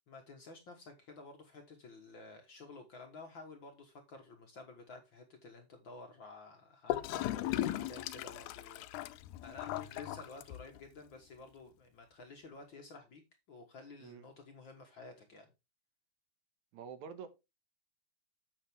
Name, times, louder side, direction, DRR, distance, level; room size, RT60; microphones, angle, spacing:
voice 1, 0.1-9.1 9.4-13.2 13.5-15.5, left 3 dB, 50° left, 1.6 m, -52 dB
Gurgling / Toilet flush, 6.9-10.9, left 14 dB, 90° left, 2.1 m, -37 dB
voice 2, 16.7-17.3, right 7 dB, 75° right, 2.4 m, -47 dB
8.8 x 7.3 x 3.5 m
omnidirectional pair, 3.5 m